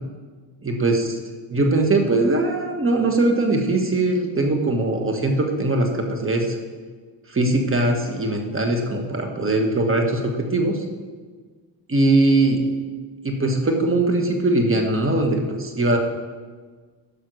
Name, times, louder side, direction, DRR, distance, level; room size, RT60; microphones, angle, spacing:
voice 1, 0.6-1.2 1.5-6.6 7.3-10.8 11.9-12.6 13.2-16.0, right 2 dB, 25° right, 3 dB, 1.3 m, -21 dB
10.5 x 5.6 x 6.4 m, 1.5 s
cardioid pair, 95°, 47 cm